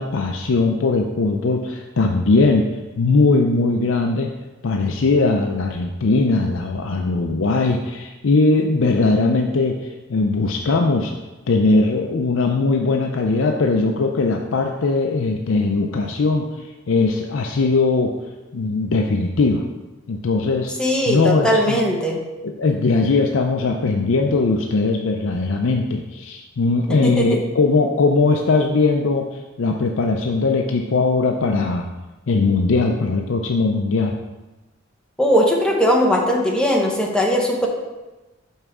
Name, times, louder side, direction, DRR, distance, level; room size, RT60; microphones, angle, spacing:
voice 1, 0.0-2.6 3.0-4.3 4.6-11.1 11.5-18.1 18.5-19.6 20.1-20.7 21.1-21.8 22.4-31.9 32.3-34.2, left 3 dB, 65° left, 3 dB, 0.5 m, -20 dB
voice 2, 20.8-22.2 27.0-27.4 35.2-37.7, equal, 5° left, -1 dB, 1.0 m, -19 dB
5.5 x 4.7 x 6.2 m, 1.1 s
head